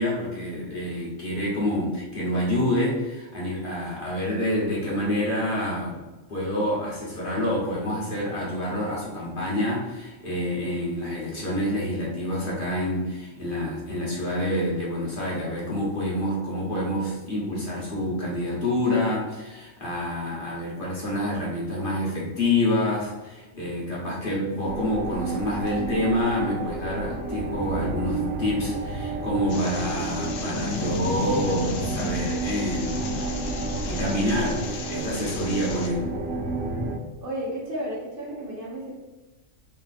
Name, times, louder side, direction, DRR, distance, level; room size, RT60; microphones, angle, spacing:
voice 1, 0.0-6.0 6.3-33.1 33.9-36.1, left 1 dB, 45° left, -6 dB, 1.2 m, -27 dB
sound 1, 24.6-37.0, right 2 dB, 70° right, 1.0 m, -30 dB
sound 2, 29.5-35.9, left 5 dB, 90° left, 1.0 m, -38 dB
voice 2, 37.2-38.9, right 1 dB, 45° right, -5 dB, 1.1 m, -32 dB
3.3 x 2.9 x 4.0 m, 1.1 s
omnidirectional pair, 1.3 m